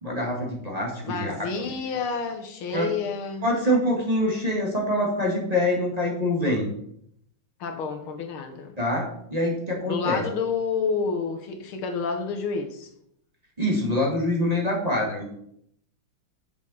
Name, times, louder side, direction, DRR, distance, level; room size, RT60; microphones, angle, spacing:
voice 1, 0.0-1.4 1.6-1.7 2.7-2.9 3.4-6.7 8.8-9.1 9.3-10.2 13.6-15.3, left 1 dB, 20° right, -2 dB, 1.9 m, -25 dB
voice 2, 1.0-3.5 7.6-8.7 9.9-12.9, left 5 dB, 80° left, 5 dB, 2.0 m, -29 dB
6.8 x 6.6 x 5.6 m, 0.72 s
omnidirectional pair, 2.3 m